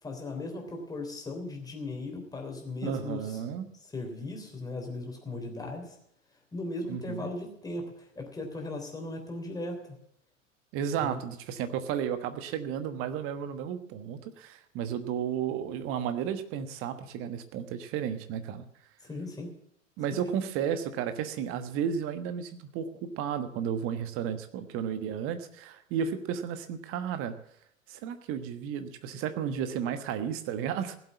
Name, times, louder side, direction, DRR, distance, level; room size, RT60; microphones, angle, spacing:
voice 1, 0.0-3.4 3.9-6.0 6.5-10.0 11.0-11.2 19.0-19.5 20.1-20.3, left 2 dB, 10° left, 2 dB, 3.4 m, -37 dB
voice 2, 2.8-3.7 6.9-7.3 10.7-18.6 20.0-27.4 27.9-31.0, right 8 dB, 35° right, 10 dB, 1.3 m, -33 dB
16.5 x 7.9 x 8.4 m, 0.72 s
figure-of-eight pair, 95°, 40 cm